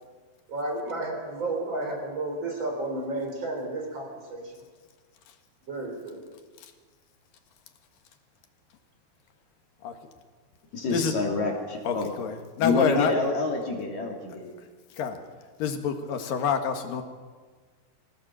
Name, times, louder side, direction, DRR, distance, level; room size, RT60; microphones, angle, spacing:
voice 1, 0.5-4.6 5.7-6.3, right 2 dB, 30° right, 3 dB, 4.5 m, -32 dB
voice 2, 10.7-12.1 12.6-14.5, left 3 dB, 50° left, 1 dB, 3.9 m, -28 dB
voice 3, 11.8-13.1 15.0-15.2 15.6-17.0, left 6 dB, 65° left, 6 dB, 3.1 m, -27 dB
24.5 x 17.5 x 7.5 m, 1.4 s
omnidirectional pair, 4.6 m